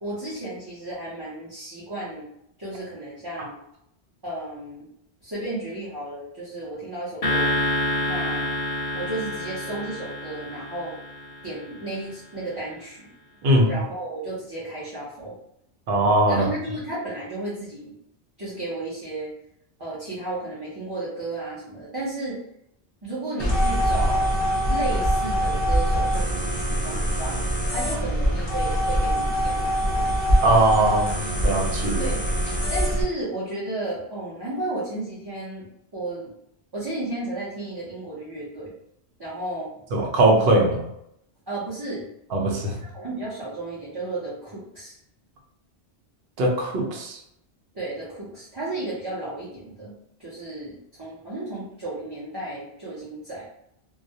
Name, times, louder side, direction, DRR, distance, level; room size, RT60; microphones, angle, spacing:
voice 1, 0.0-2.3 2.6-3.6 4.2-4.9 5.2-7.6 8.0-8.5 8.9-10.9 11.4-13.1 13.7-15.3 16.3-17.9 18.4-19.3 19.8-22.4 23.0-24.4 24.7-27.4 27.7-30.1 32.0-32.2 32.7-36.3 36.7-38.7 39.2-39.8 41.5-42.1 42.7-45.0 47.7-49.9 50.2-53.5, right 2 dB, 30° right, -9 dB, 0.5 m, -33 dB
sound 1, 7.2-11.7, left 1 dB, 65° left, 0.7 m, -28 dB
voice 2, 13.4-13.7 15.9-16.5 30.4-32.1 39.9-40.8 42.3-42.7 46.4-47.2, right 1 dB, 65° right, 0 dB, 0.8 m, -20 dB
sound 2, 23.4-33.0, equal, 30° left, 0.6 m, -23 dB
2.3 x 2.0 x 2.7 m, 0.78 s
omnidirectional pair, 1.1 m